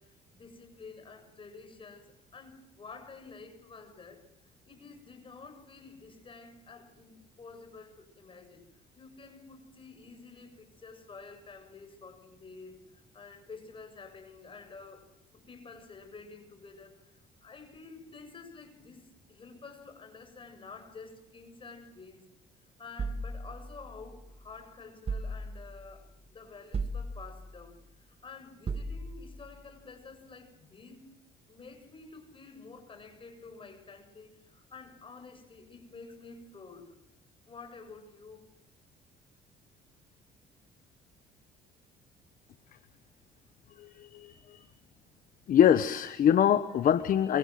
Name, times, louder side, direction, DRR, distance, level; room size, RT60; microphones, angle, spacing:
voice 1, 0.0-22.3 22.6-31.1 31.5-36.9 37.5-38.5, left 4 dB, 30° left, 7 dB, 7.6 m, -50 dB
sound 1, 23.0-24.4 25.1-25.9 26.7-27.6 28.7-29.5, right 2 dB, 35° right, 2.1 m, -37 dB
voice 2, 43.8-44.7 45.5-47.4, left 9 dB, 55° left, 12 dB, 1.2 m, -24 dB
27.0 x 25.0 x 7.8 m, 0.86 s
cardioid pair, 110°, 17 cm